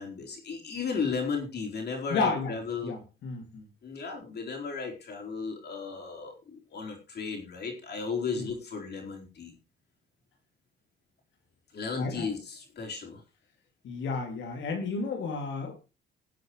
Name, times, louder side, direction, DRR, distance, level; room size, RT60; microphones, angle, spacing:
voice 1, 0.0-2.9 3.8-9.5 11.7-13.2, left 5 dB, 55° left, 4.3 m, -35 dB
voice 2, 2.1-2.5 2.8-3.6 8.4-8.5 12.0-12.3 13.8-15.8, left 4 dB, 75° left, 2.4 m, -32 dB
21.5 x 7.7 x 3.1 m
cardioid pair, 90°, 20 cm